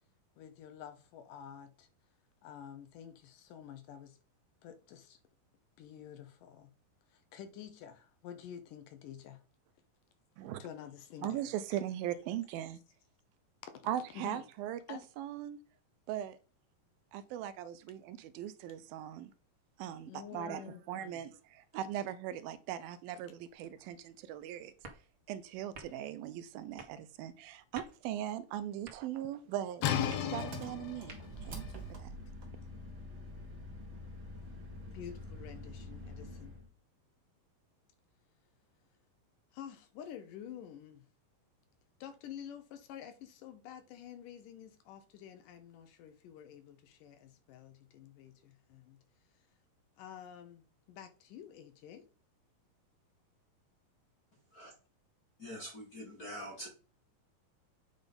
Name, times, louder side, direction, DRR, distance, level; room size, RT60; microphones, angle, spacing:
voice 1, 0.4-1.9 2.4-4.2 4.6-5.2 5.8-6.7 7.1-9.4 10.6-11.5 14.1-14.4 14.9-15.0 20.0-21.2 31.1-31.2 34.9-36.6 39.5-41.1 42.0-49.0 50.0-52.1, left 9 dB, 75° left, 2.2 m, -49 dB
voice 2, 11.2-12.8 13.9-15.6 16.1-16.4 17.1-19.3 19.8-24.7 25.3-29.9 30.2-32.2, right 11 dB, 85° right, 2.4 m, -40 dB
sound 1, 23.5-31.6, right 3 dB, 65° right, 0.8 m, -57 dB
sound 2, 29.8-35.4, left 9 dB, 90° left, 1.5 m, -39 dB
Engine, 30.4-36.7, equal, 45° right, 1.9 m, -46 dB
voice 3, 55.4-56.7, equal, 40° left, 1.3 m, -44 dB
9.2 x 3.8 x 5.2 m
omnidirectional pair, 4.2 m